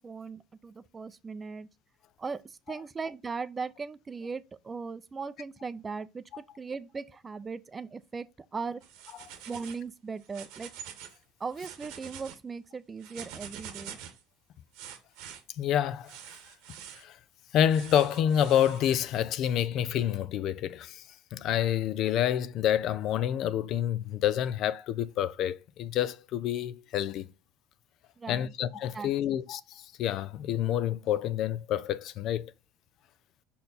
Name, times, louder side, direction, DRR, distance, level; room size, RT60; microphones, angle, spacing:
voice 1, 0.0-1.7 2.2-8.3 8.5-8.8 9.5-10.7 11.4-14.0 28.2-28.5 28.9-29.4, right 5 dB, 25° right, 0.5 m, -38 dB
sound 1, 8.8-9.8 10.2-11.2 11.5-12.4 13.0-14.2 14.7-15.4 16.1-17.0 17.7-18.9, right 9 dB, 75° right, 1.2 m, -46 dB
voice 2, 15.6-16.1 17.0-17.2 17.5-21.0 21.3-27.3 28.3-32.5, left 10 dB, 60° left, 0.4 m, -28 dB
5.4 x 4.3 x 4.0 m
supercardioid pair, 95°, 0 cm